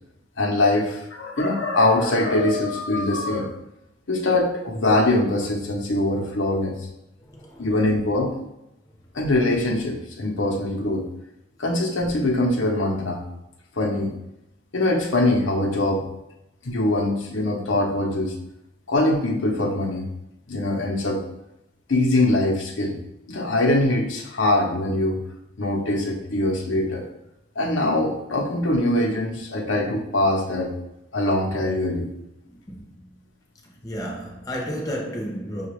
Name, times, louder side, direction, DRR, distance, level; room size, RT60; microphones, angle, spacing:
voice 1, 0.4-3.6 4.1-6.9 7.6-8.3 9.1-11.1 11.6-13.2 13.8-14.2 14.7-16.1 16.6-18.4 18.9-20.1 20.5-21.2 21.9-23.0 23.3-25.2 25.6-27.1 27.6-30.7 31.1-32.1, left 2 dB, 80° left, 0.8 m, -22 dB
voice 2, 7.2-7.7 32.4-33.2 33.6-35.7, equal, 20° left, 0.7 m, -33 dB
5.6 x 2.3 x 3.1 m
head